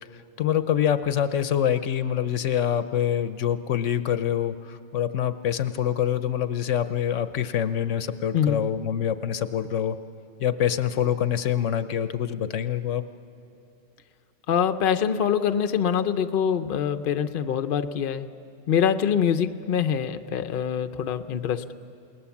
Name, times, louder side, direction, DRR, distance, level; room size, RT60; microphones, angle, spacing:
voice 1, 0.1-10.0 10.4-13.0, left 9 dB, 70° left, 12 dB, 1.0 m, -25 dB
voice 2, 14.5-18.3 18.7-21.6, left 8 dB, 50° left, 10 dB, 0.8 m, -24 dB
28.5 x 19.0 x 7.2 m, 2.7 s
omnidirectional pair, 1.3 m